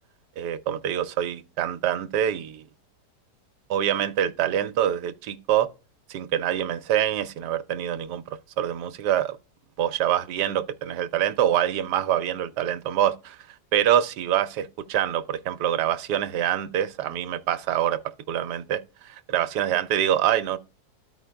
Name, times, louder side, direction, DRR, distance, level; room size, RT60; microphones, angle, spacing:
voice 1, 0.4-2.6 3.7-5.7 6.1-8.2 8.6-9.4 9.8-13.4 13.7-18.0 18.3-20.6, right 11 dB, 80° right, 1.2 m, -25 dB
13.0 x 5.0 x 2.2 m
omnidirectional pair, 1.8 m